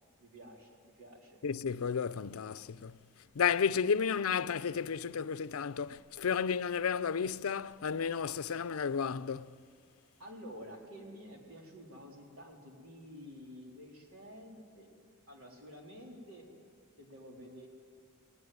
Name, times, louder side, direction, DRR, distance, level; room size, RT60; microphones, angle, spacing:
voice 1, 0.2-1.4 10.2-14.9 15.3-16.5 17.0-17.7, equal, 75° right, 3.9 m, -50 dB
voice 2, 1.4-3.0 3.4-9.5, left 6 dB, 85° left, 0.5 m, -32 dB
19.0 x 18.5 x 9.5 m
head